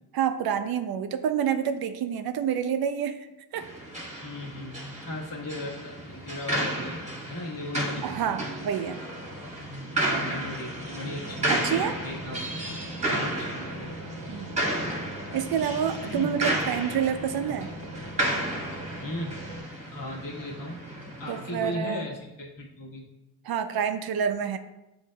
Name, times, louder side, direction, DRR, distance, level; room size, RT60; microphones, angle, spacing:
voice 1, 0.1-3.3 3.5-3.7 8.0-9.0 11.5-11.9 14.3-14.6 15.3-17.7 21.3-22.1 23.4-24.6, right 8 dB, 55° right, 9 dB, 0.5 m, -28 dB
sound 1, 3.5-21.7, right 1 dB, 15° right, 1.3 m, -33 dB
voice 2, 4.2-7.0 7.3-8.4 9.7-12.5 13.0-13.9 14.3-14.5 16.0-16.4 19.0-19.5 19.9-20.8 21.2-23.0, left 1 dB, 45° left, -3 dB, 1.3 m, -37 dB
sound 2, 11.2-19.6, right 1 dB, 80° right, 0.8 m, -42 dB
7.4 x 2.6 x 2.2 m, 0.94 s
cardioid pair, 70°, 45 cm